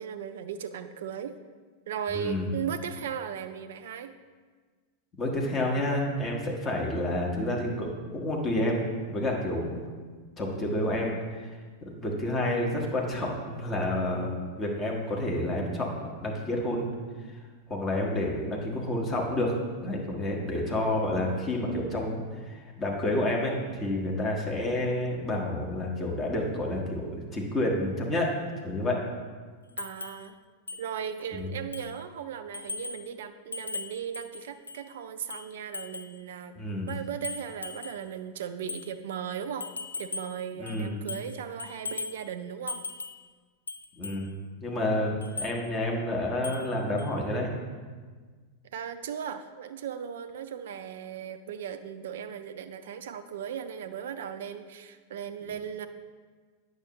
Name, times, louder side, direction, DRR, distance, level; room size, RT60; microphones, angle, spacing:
voice 1, 0.0-1.3 1.9-4.1 29.8-30.4 30.7-36.5 36.8-39.7 40.0-42.8 48.6-55.9, right 8 dB, 60° right, 10 dB, 0.4 m, -37 dB
voice 2, 2.1-2.5 5.1-8.8 9.1-9.8 10.4-11.5 11.8-16.9 17.7-19.5 19.8-28.3 28.6-29.0 31.3-31.5 36.5-36.9 40.5-40.9 44.0-44.3 44.6-47.5, left 1 dB, 25° left, -1 dB, 1.3 m, -29 dB
sound 1, 29.8-30.2 30.7-30.8 31.2-31.3 31.7-32.0 32.5-33.0 33.5-34.8 35.3-36.2 36.9-38.0 38.7-38.9 39.6-40.4 40.7-41.3 41.6-42.2 42.7-43.2 43.7-44.2 45.2-45.6 46.4-46.7 47.0-47.1, left 4 dB, 80° left, 0.4 m, -38 dB
8.9 x 6.3 x 3.0 m, 1.5 s
figure-of-eight pair, 90°, 0 cm